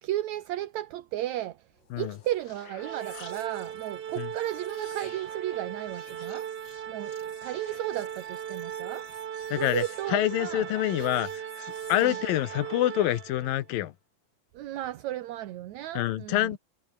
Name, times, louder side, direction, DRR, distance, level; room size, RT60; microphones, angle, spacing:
voice 1, 0.0-1.7 2.0-6.5 6.9-9.1 9.5-10.7 11.9-12.2 14.5-16.6, right 14 dB, 65° right, 2.1 m, -34 dB
sound 1, 1.7-13.2, left 5 dB, 35° left, 2.9 m, -52 dB
Organ, 2.8-13.7, right 9 dB, 90° right, 4.3 m, -38 dB
voice 2, 9.5-9.8 10.1-13.9 15.9-16.6, left 14 dB, 75° left, 2.8 m, -27 dB
omnidirectional pair, 4.1 m